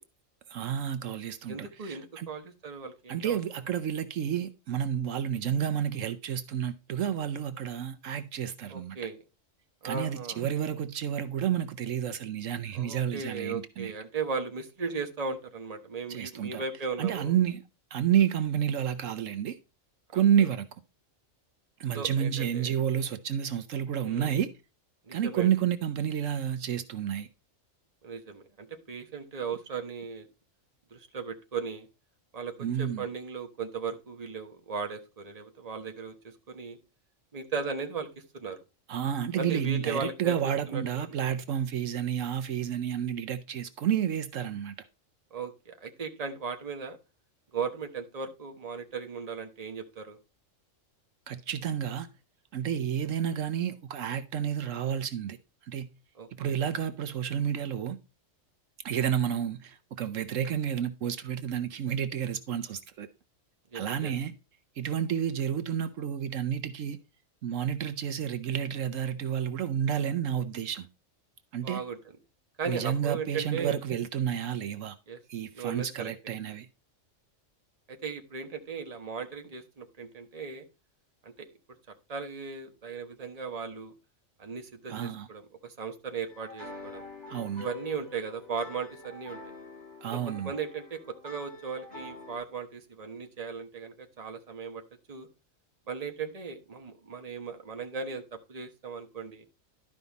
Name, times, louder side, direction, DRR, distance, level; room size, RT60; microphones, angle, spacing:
voice 1, 0.5-2.3 3.1-9.0 9.8-13.9 16.1-16.6 17.0-17.6 17.9-19.6 20.1-20.7 21.8-24.5 25.1-27.3 32.6-33.1 38.9-44.7 51.3-52.1 52.5-55.4 55.6-55.9 56.4-58.0 58.8-63.1 63.7-64.3 64.8-67.0 67.4-70.9 71.5-71.8 72.7-75.0 75.3-76.7 84.9-85.3 87.3-87.7 90.0-90.5, right 9 dB, 75° right, 1.1 m, -30 dB
voice 2, 1.5-3.4 8.7-9.2 9.8-10.4 12.7-17.3 20.1-20.5 21.9-22.7 23.9-24.4 25.1-25.5 28.0-30.3 30.9-31.9 32.3-32.5 32.8-36.8 37.3-38.1 38.3-38.6 39.3-41.2 45.3-47.0 47.5-50.2 56.1-56.5 63.7-64.1 71.6-72.0 72.6-73.8 75.1-75.2 75.5-76.1 77.9-80.6 81.2-81.5 82.1-83.9 84.4-87.0 87.6-89.4 90.1-94.8 95.1-95.3 95.9-99.4, right 5 dB, 30° right, 1.2 m, -37 dB
sound 1, 86.3-92.4, left 2 dB, 35° left, 7.2 m, -46 dB
12.0 x 5.5 x 4.0 m
omnidirectional pair, 1.3 m